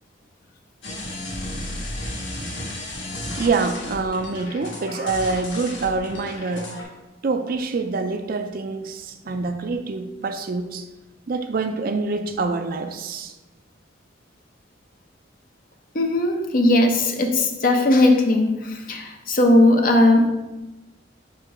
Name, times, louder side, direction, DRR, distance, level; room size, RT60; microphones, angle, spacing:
sound 1, 0.8-6.8, left 1 dB, 80° left, 1.6 m, -33 dB
voice 1, 3.4-6.9 7.2-10.9 11.3-13.3, right 3 dB, 50° right, 8 dB, 0.4 m, -26 dB
voice 2, 15.9-20.3, left 1 dB, 50° left, 4 dB, 0.7 m, -18 dB
4.4 x 4.4 x 4.9 m, 1.0 s
head